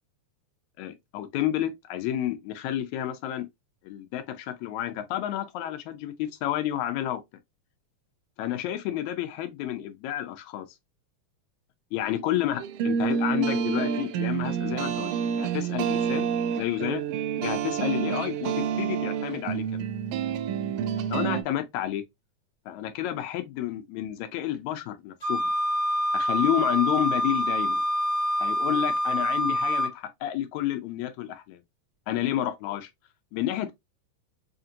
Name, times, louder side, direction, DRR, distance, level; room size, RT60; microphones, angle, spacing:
voice 1, 0.8-3.5 3.8-7.2 8.4-10.7 11.9-17.0 17.4-19.9 21.1-22.0 22.7-25.4 26.1-27.8 28.4-31.6 32.1-32.9 33.3-33.7, left 12 dB, 80° left, 2.0 m, -30 dB
sound 1, 12.6-21.4, right 7 dB, 80° right, 1.4 m, -28 dB
Wind instrument woodwind instrument, 25.2-29.9, equal, 25° left, 1.0 m, -26 dB
5.0 x 2.8 x 2.4 m
omnidirectional pair, 3.4 m